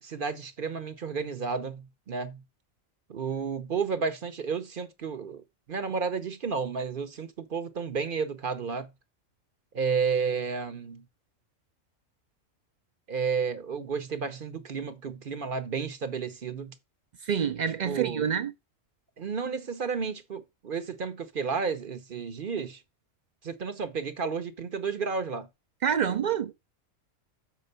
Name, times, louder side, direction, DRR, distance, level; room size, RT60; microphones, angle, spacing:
voice 1, 0.0-2.4 3.1-5.4 5.7-8.9 9.7-11.0 13.1-16.7 17.8-18.2 19.2-22.8 23.4-25.5, right 5 dB, 45° right, 0.8 m, -32 dB
voice 2, 17.2-18.5 25.8-26.5, right 8 dB, 90° right, 0.4 m, -27 dB
6.5 x 4.4 x 6.7 m
omnidirectional pair, 1.4 m